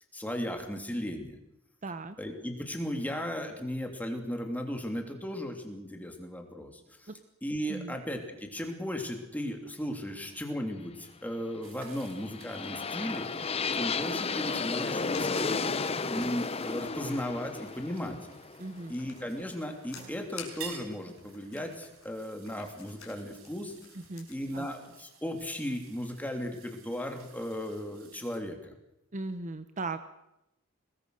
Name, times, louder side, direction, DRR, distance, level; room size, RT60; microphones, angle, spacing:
voice 1, 0.1-1.3 2.2-7.1 7.4-13.3 13.7-15.6 16.0-18.2 18.9-23.7 24.3-28.7, equal, 10° left, 3 dB, 3.0 m, -36 dB
voice 2, 1.8-2.2 7.1-7.2 7.7-8.0 18.6-18.9 24.1-24.3 24.5-24.7 29.1-30.0, right 3 dB, 35° right, 11 dB, 0.8 m, -37 dB
sound 1, 11.6-28.4, right 7 dB, 70° right, 4.7 m, -53 dB
sound 2, 11.8-19.8, left 4 dB, 30° left, 0.8 m, -33 dB
Writing, 15.1-24.4, left 7 dB, 90° left, 5.0 m, -52 dB
23.5 x 19.0 x 6.5 m, 0.87 s
head